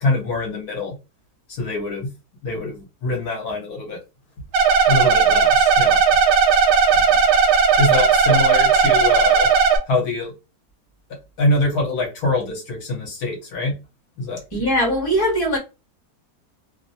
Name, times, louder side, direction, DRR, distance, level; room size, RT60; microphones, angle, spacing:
voice 1, 0.0-0.9 1.5-2.1 2.4-4.0 4.9-6.0 6.9-7.0 7.8-9.5 9.9-10.3 11.4-13.7 14.2-14.4, left 2 dB, 65° left, 1.2 m, -24 dB
sound 1, 4.5-9.8, right 6 dB, 80° right, 1.2 m, -16 dB
voice 2, 14.5-15.6, equal, 15° left, 0.9 m, -20 dB
2.9 x 2.0 x 2.6 m
omnidirectional pair, 1.9 m